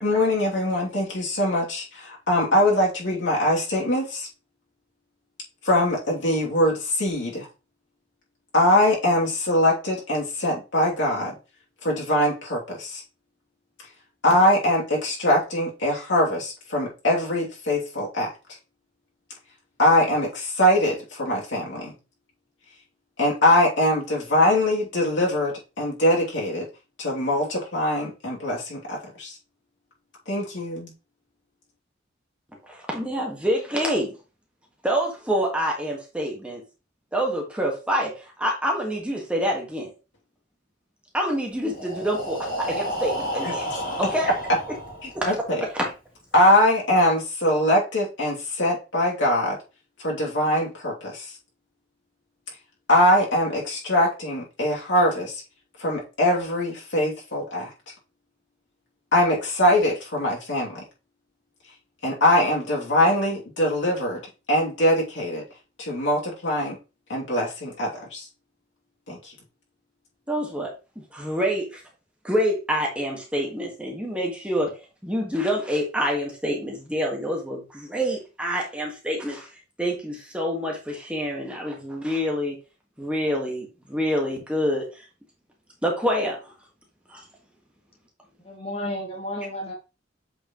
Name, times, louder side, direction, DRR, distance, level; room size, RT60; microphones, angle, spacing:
voice 1, 0.0-4.3 5.6-7.5 8.5-11.3 11.8-13.0 14.2-18.3 19.8-21.9 23.2-26.7 27.0-29.3 30.3-30.9 43.4-43.5 45.0-45.6 46.3-49.6 50.0-51.3 52.9-55.4 55.8-57.7 59.1-60.8 62.0-64.2 64.5-65.4 65.8-66.8 67.1-68.3 69.1-69.2, left 1 dB, 75° left, -3 dB, 2.8 m, -22 dB
voice 2, 32.7-34.2 34.8-36.6 37.1-39.9 41.1-43.7 44.0-44.3 44.7-44.8 45.1-45.4 45.7-45.9 70.3-71.8 72.2-74.8 75.0-79.5 79.8-82.6 83.0-85.0 85.8-86.5 87.1-87.2, equal, 5° right, -1 dB, 1.7 m, -27 dB
Breathing, 41.6-45.5, equal, 50° left, 2.8 m, -31 dB
voice 3, 88.4-89.7, left 1 dB, 30° left, 0 dB, 1.8 m, -32 dB
8.0 x 5.0 x 3.1 m, 0.30 s
head